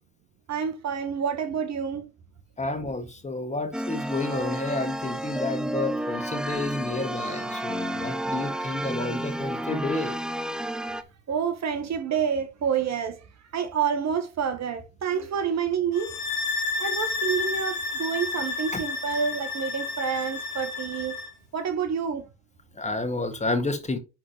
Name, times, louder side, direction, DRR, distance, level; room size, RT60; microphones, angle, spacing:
voice 1, 0.5-2.1 11.3-13.3 13.5-16.1 16.8-21.2 21.5-22.2, right 7 dB, 35° right, 1.2 m, -28 dB
voice 2, 2.6-10.1 18.7-18.8 22.8-24.0, left 2 dB, 15° left, 1.9 m, -30 dB
sound 1, 3.7-11.0, right 1 dB, ahead, 0.7 m, -31 dB
sound 2, 15.9-21.3, left 3 dB, 90° left, 2.2 m, -31 dB
10.5 x 3.8 x 3.0 m
hypercardioid pair, 85°, 44 cm